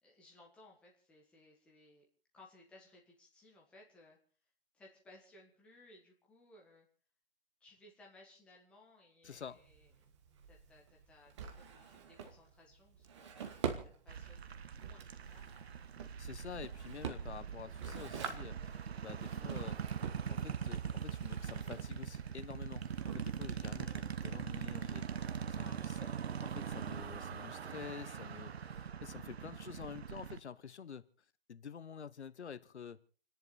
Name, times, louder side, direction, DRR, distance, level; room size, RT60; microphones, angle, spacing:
voice 1, 0.0-2.0 2.3-4.2 4.7-6.9 7.6-10.1 10.5-15.5 25.5-26.0, left 2 dB, 5° left, 1.6 m, -62 dB
voice 2, 9.2-9.6 16.2-20.0 20.3-26.0 26.4-31.0 31.5-33.0, left 7 dB, 75° left, 1.2 m, -49 dB
Drawer open or close, 9.2-24.4, right 7 dB, 25° right, 1.4 m, -46 dB
sound 1, 14.1-30.4, right 7 dB, 65° right, 1.1 m, -42 dB
29.0 x 10.5 x 4.2 m
hypercardioid pair, 170°, 34 cm